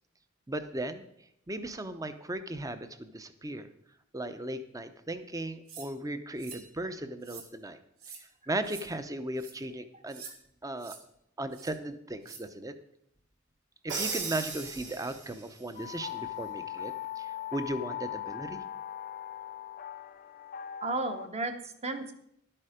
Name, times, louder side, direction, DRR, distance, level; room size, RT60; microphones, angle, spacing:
voice 1, 0.5-1.1 1.5-3.7 4.1-7.8 8.5-10.2 10.6-10.9 11.4-12.7 13.8-18.6, right 1 dB, 15° right, 10 dB, 0.8 m, -37 dB
sound 1, 5.7-5.9 6.4-6.7 7.2-7.5 8.0-8.2 8.6-8.8 9.4-9.5 10.1-10.3 10.8-11.0 11.5-11.7 12.2-12.4, right 6 dB, 90° right, 1.9 m, -46 dB
Crash cymbal, 13.9-15.6, right 4 dB, 60° right, 2.4 m, -36 dB
sound 2, 15.7-21.3, left 11 dB, 45° left, 0.5 m, -40 dB
voice 2, 20.8-22.1, right 2 dB, 30° right, 8 dB, 1.1 m, -34 dB
12.0 x 8.9 x 5.1 m, 0.74 s
head